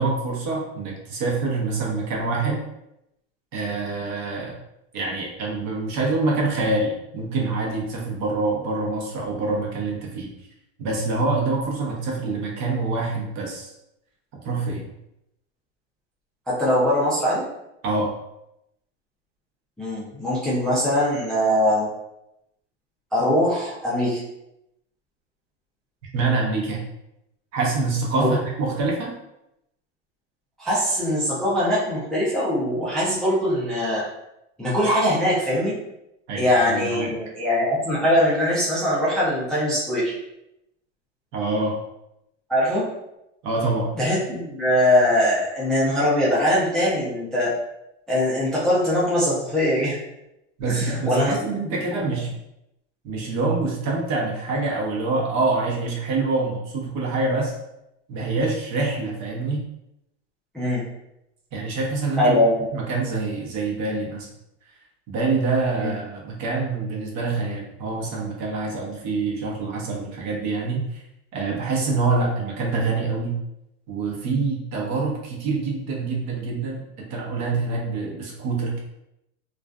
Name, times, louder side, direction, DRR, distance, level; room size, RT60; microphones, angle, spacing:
voice 1, 0.0-2.6 3.5-4.6 4.9-10.3 10.8-13.7 14.3-14.9 17.8-18.1 26.1-26.9 27.5-29.1 36.3-37.1 41.3-41.8 43.4-43.9 50.6-52.3 53.0-57.6 58.1-59.6 61.5-62.4 62.7-64.3 65.1-71.0 71.3-73.4 73.9-78.8, right 3 dB, 45° right, -1 dB, 0.8 m, -25 dB
voice 2, 16.5-17.4 19.8-21.9 23.1-24.2 28.1-28.3 30.6-34.0 34.6-35.7 36.4-40.1 42.5-42.9 44.0-47.5 48.1-50.0 50.7-51.3 60.5-60.8 62.2-62.5 65.8-65.9, left 1 dB, ahead, -8 dB, 0.4 m, -21 dB
2.4 x 2.3 x 2.2 m, 0.84 s
supercardioid pair, 125°, 37 cm